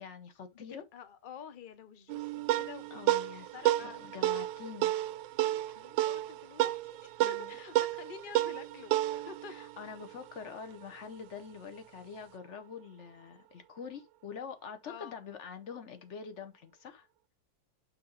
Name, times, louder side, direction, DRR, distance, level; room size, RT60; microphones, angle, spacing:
voice 1, 0.0-0.8 2.9-3.5 3.8-4.9 7.2-7.5 9.5-17.1, left 6 dB, 50° left, 1.0 m, -45 dB
voice 2, 0.5-2.9 3.5-4.4 5.4-9.5 14.8-15.2, left 7 dB, 85° left, 0.4 m, -49 dB
sound 1, 2.1-10.8, right 14 dB, 80° right, 1.3 m, -32 dB
5.9 x 5.2 x 3.9 m
omnidirectional pair, 2.1 m